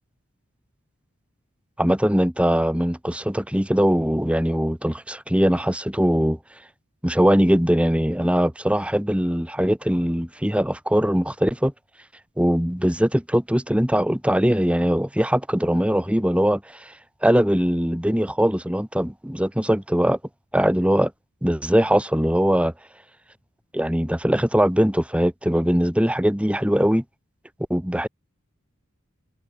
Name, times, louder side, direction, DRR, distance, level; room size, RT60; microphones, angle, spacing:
voice 1, 1.8-6.4 7.0-11.7 12.4-16.9 17.2-20.2 20.5-21.1 21.4-22.7 23.7-27.0 27.7-28.1, equal, 5° right, 2.4 m, -21 dB
head